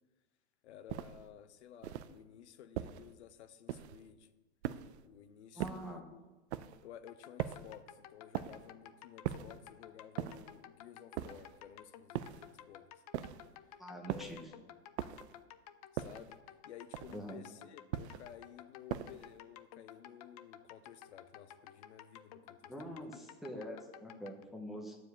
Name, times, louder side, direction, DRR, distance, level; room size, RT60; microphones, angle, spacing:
voice 1, 0.6-4.3 5.0-6.3 6.8-13.0 14.1-14.7 15.9-16.4 16.6-22.9, left 9 dB, 65° left, 11 dB, 0.8 m, -54 dB
sound 1, 0.9-1.3 1.8-2.2 2.8-3.1 3.7-4.1 4.6-5.1 5.6-6.0 6.5-6.9 7.4-7.8 8.3-8.7 9.2-9.6 10.2-10.6 11.2-11.6 12.2-12.5 13.1-13.5 14.1-14.4 15.0-15.4 16.0-16.4 16.9-17.3 17.9-18.3 18.9-19.3, right 11 dB, 65° right, 0.6 m, -41 dB
voice 2, 5.6-6.0 13.8-14.4 17.1-17.4 22.7-25.0, equal, ahead, 0 dB, 0.7 m, -45 dB
sound 2, 7.1-24.4, left 11 dB, 35° left, 0.4 m, -54 dB
9.3 x 4.9 x 7.8 m, 1.2 s
supercardioid pair, 155°, 36 cm